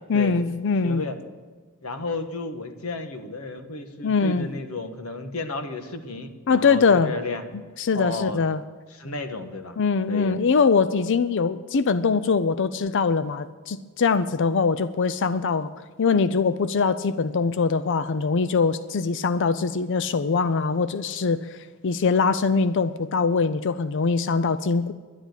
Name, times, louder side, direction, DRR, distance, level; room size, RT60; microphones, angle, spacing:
voice 1, 0.1-1.0 4.0-4.5 6.5-7.1 7.8-8.6 9.8-15.7 16.0-21.5 21.8-24.9, left 5 dB, 60° left, 14 dB, 0.5 m, -22 dB
voice 2, 0.8-1.2 1.8-7.4 7.9-8.4 8.9-9.8 10.1-10.4, left 2 dB, 85° left, 7 dB, 1.4 m, -32 dB
11.0 x 10.5 x 8.0 m, 1.4 s
head